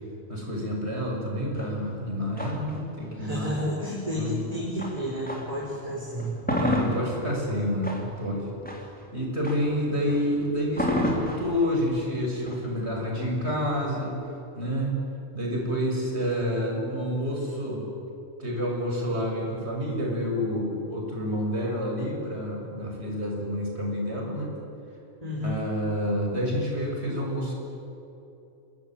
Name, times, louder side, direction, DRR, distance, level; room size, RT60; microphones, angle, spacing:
voice 1, 0.3-3.5 4.2-4.4 5.6-5.7 6.5-8.5 9.1-14.2 14.6-15.0 15.3-17.9 18.4-24.6 25.4-27.5, equal, 55° right, -1 dB, 7.0 m, -28 dB
sound 1, 1.5-5.7 6.1-14.0, equal, 5° left, 3.5 m, -33 dB
voice 2, 3.2-6.3 25.2-25.6, equal, 30° right, -4 dB, 4.8 m, -31 dB
28.5 x 20.5 x 9.2 m, 2.9 s
omnidirectional pair, 1.3 m